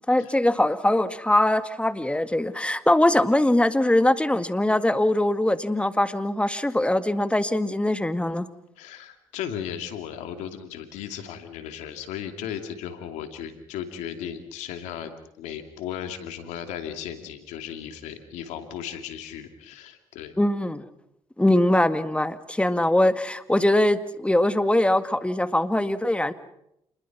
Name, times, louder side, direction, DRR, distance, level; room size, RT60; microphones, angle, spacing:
voice 1, 0.1-8.5 20.4-20.8 21.4-26.3, left 1 dB, 10° left, 11 dB, 1.9 m, -22 dB
voice 2, 8.8-20.3, left 9 dB, 90° left, 8 dB, 2.6 m, -36 dB
28.5 x 21.5 x 6.0 m, 0.79 s
supercardioid pair, 60°, 12 cm